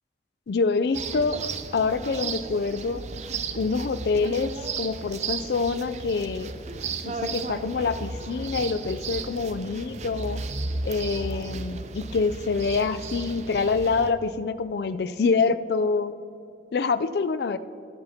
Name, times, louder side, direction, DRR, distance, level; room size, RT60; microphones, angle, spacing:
voice 1, 0.5-1.4 1.7-3.0 3.6-6.5 7.1-10.4 10.8-16.1 16.7-17.6, left 4 dB, 60° left, 13 dB, 0.4 m, -26 dB
sound 1, 0.9-14.1, right 4 dB, 40° right, 0.5 m, -34 dB
20.0 x 7.8 x 2.9 m, 2.7 s
head